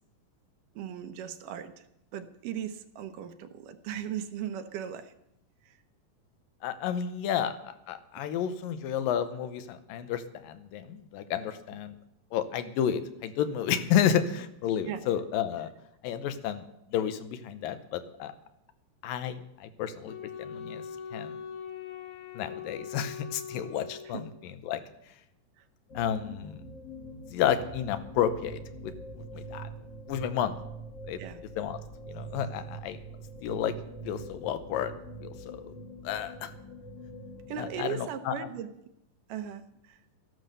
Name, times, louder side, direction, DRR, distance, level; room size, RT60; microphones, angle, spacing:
voice 1, 0.8-1.7 2.1-5.1 5.7-5.8 8.2-8.3 14.9-15.0 24.0-24.2 25.6-25.7 31.2-31.4 37.5-38.7 39.3-40.0, right 9 dB, 75° right, 9 dB, 2.4 m, -37 dB
voice 2, 6.6-7.5 7.9-12.0 12.3-15.7 16.0-16.7 16.9-18.3 19.0-20.8 21.1-21.4 22.4-24.3 24.6-24.8 25.9-26.6 27.3-28.9 29.3-29.7 30.1-30.5 31.1-31.2 31.6-31.8 32.1-33.0 33.4-33.7 34.1-34.9 35.2-35.7 36.0-36.5 37.6-38.5, left 9 dB, 90° left, 10 dB, 2.7 m, -31 dB
Wind instrument woodwind instrument, 20.1-24.5, left 7 dB, 70° left, 2.9 m, -42 dB
sound 1, 25.9-37.9, right 2 dB, 50° left, 1.5 m, -44 dB
14.0 x 11.5 x 6.7 m, 0.82 s
omnidirectional pair, 3.9 m